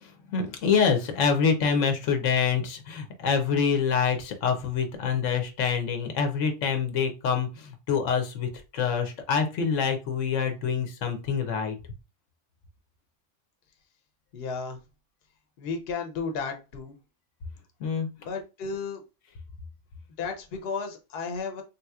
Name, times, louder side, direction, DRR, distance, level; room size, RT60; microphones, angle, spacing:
voice 1, 0.0-11.8 17.8-18.1, left 6 dB, 90° left, 1.0 m, -26 dB
voice 2, 14.3-14.8 15.6-17.0 18.2-19.0 20.2-21.6, left 5 dB, 60° left, 0.8 m, -33 dB
3.5 x 2.8 x 2.3 m
omnidirectional pair, 1.2 m